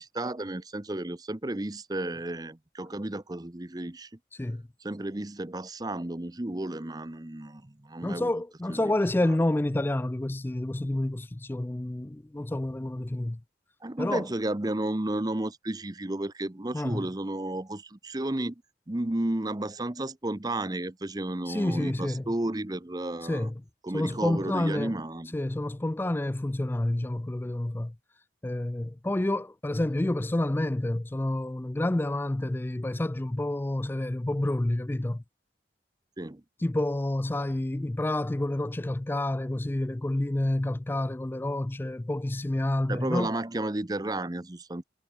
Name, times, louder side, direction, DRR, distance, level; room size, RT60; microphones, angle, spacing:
voice 1, 0.0-4.1 4.8-8.3 8.7-8.9 13.8-18.6 18.9-23.5 23.8-25.4 36.2-36.4 42.9-44.8, right 1 dB, 20° right, 0.8 m, -32 dB
voice 2, 4.3-4.7 8.0-13.4 14.0-14.3 16.7-17.0 21.5-22.2 23.3-23.6 23.9-25.0 25.3-28.0 28.4-35.2 36.6-43.3, left 1 dB, 10° left, 0.3 m, -29 dB
head